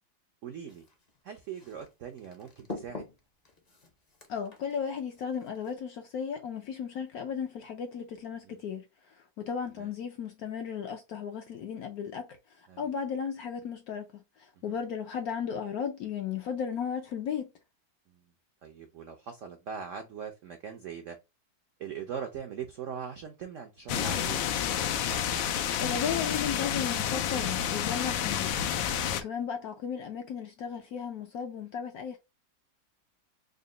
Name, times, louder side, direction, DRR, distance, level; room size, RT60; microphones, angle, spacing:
voice 1, 0.4-0.9 1.2-3.1 8.4-8.6 9.8-9.9 12.7-12.9 14.7-14.8 18.1-18.2 18.6-21.2 21.8-24.4 28.3-28.6, right 7 dB, 75° right, 0.7 m, -41 dB
sound 1, 0.7-5.8, left 3 dB, 45° left, 0.5 m, -47 dB
voice 2, 4.3-8.9 9.2-17.5 25.8-28.7 29.1-32.2, left 7 dB, 70° left, 0.9 m, -35 dB
sound 2, 23.9-29.2, left 9 dB, 90° left, 1.3 m, -30 dB
3.9 x 2.1 x 3.7 m
omnidirectional pair, 2.0 m